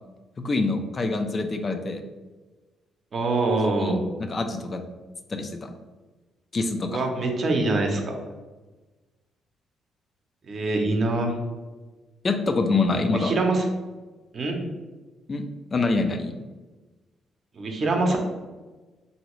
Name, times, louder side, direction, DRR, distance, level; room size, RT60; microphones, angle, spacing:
voice 1, 0.4-2.0 3.7-4.8 5.3-5.7 6.5-7.0 12.2-13.3 15.3-16.4, left 3 dB, 35° left, 6 dB, 0.3 m, -26 dB
voice 2, 3.1-4.0 6.9-8.0 10.4-11.4 13.1-13.7 14.3-14.6 17.5-18.2, right 2 dB, 50° right, 2 dB, 0.6 m, -24 dB
3.0 x 2.7 x 3.0 m, 1.2 s
cardioid pair, 90°, 0 cm